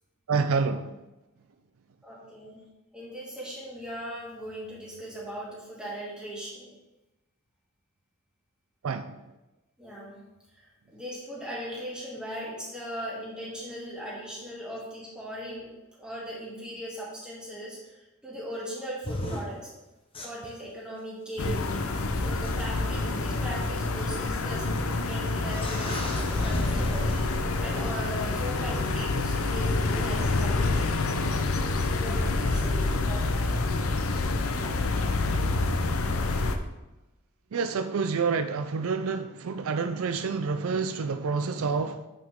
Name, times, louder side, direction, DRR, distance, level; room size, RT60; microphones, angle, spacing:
voice 1, 0.3-0.9 8.8-9.2 37.5-42.0, right 5 dB, 75° right, 0.4 m, -28 dB
voice 2, 2.0-2.6 2.9-6.7 9.8-10.2 10.9-15.7 16.0-17.8 18.2-19.7 20.2-21.7 22.1-27.1 27.6-30.9 32.0-33.5, equal, 5° right, 2.4 m, -38 dB
sound 1, 19.0-19.4 20.1-20.5 21.8-21.9 22.4-22.5 23.6-23.7 25.0-25.1 25.4-27.8 29.9-30.1, left 1 dB, 25° left, 1.1 m, -34 dB
sound 2, 21.4-36.6, left 3 dB, 80° left, 0.7 m, -27 dB
8.8 x 5.9 x 3.6 m
head